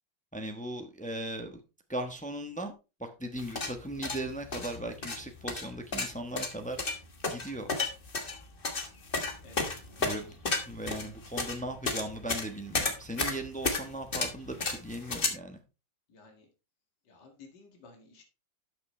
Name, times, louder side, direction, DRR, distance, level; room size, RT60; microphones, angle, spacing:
voice 1, 0.3-1.6 1.9-2.7 3.0-7.0 7.3-7.7 10.0-10.4 10.7-15.6, right 1 dB, 5° left, 6 dB, 0.6 m, -38 dB
sound 1, 3.4-15.3, left 3 dB, 30° left, 1.4 m, -33 dB
voice 2, 16.1-16.5 17.1-18.2, left 4 dB, 60° left, 2 dB, 2.5 m, -54 dB
12.0 x 6.1 x 3.2 m, 0.29 s
omnidirectional pair, 2.1 m